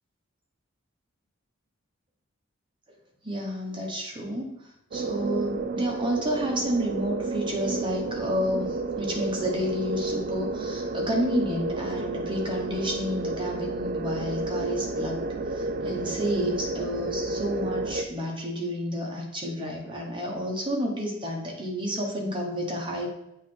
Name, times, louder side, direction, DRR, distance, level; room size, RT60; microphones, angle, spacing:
voice 1, 3.2-4.6 4.9-15.2 15.5-23.1, equal, 25° right, 0 dB, 1.0 m, -30 dB
sound 1, 4.9-18.1, right 2 dB, 45° right, 0.4 m, -31 dB
8.1 x 3.2 x 4.2 m, 0.84 s
head